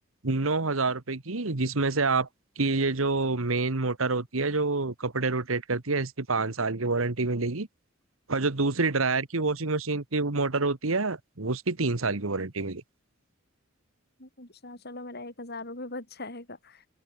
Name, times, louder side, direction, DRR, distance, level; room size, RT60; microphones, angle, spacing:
voice 1, 0.2-2.3 2.6-7.7 8.3-12.8, right 3 dB, 85° right, 1.5 m, -27 dB
voice 2, 14.2-16.9, left 2 dB, 50° left, 5.8 m, -40 dB
open air
head